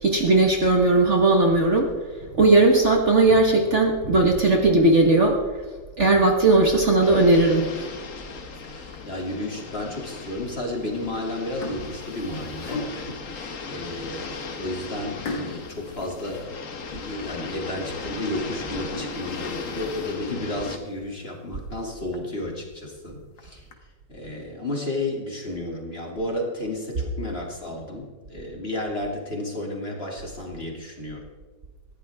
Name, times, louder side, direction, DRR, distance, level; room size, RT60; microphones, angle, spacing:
voice 1, 0.0-1.9 2.3-5.4 6.0-7.7, right 2 dB, 40° right, 2 dB, 1.6 m, -18 dB
sound 1, 7.0-20.8, left 4 dB, 45° left, 1.5 m, -37 dB
voice 2, 8.6-16.5 16.9-23.7 24.1-31.2, left 1 dB, 30° left, 0 dB, 2.8 m, -32 dB
sound 2, 8.8-9.3 9.9-10.0 10.9-11.1 11.4-13.3 13.9-14.0 14.3-14.4 15.2-17.0 17.4-17.5 18.0-18.1 18.7-20.3 20.8-20.9 21.3-21.4 21.7-21.8 22.1-22.2 23.1-23.7, left 2 dB, 70° left, 2.4 m, -38 dB
20.0 x 15.0 x 3.6 m, 1.4 s
omnidirectional pair, 2.1 m